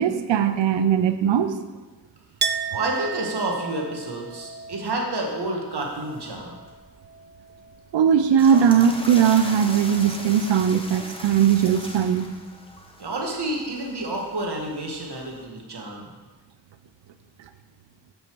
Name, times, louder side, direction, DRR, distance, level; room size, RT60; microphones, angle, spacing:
voice 1, 0.0-1.5 7.9-12.2, right 8 dB, 85° right, 11 dB, 0.6 m, -19 dB
Chink clink, 2.4-7.9 8.2-9.1, right 5 dB, 25° right, 0.4 m, -34 dB
voice 2, 2.7-6.5 13.0-16.1, right 2 dB, 65° right, 0 dB, 1.6 m, -29 dB
sound 1, 5.8-15.4, left 1 dB, 10° left, 1.2 m, -40 dB
7.2 x 5.4 x 4.6 m, 1.2 s
cardioid pair, 40°, 43 cm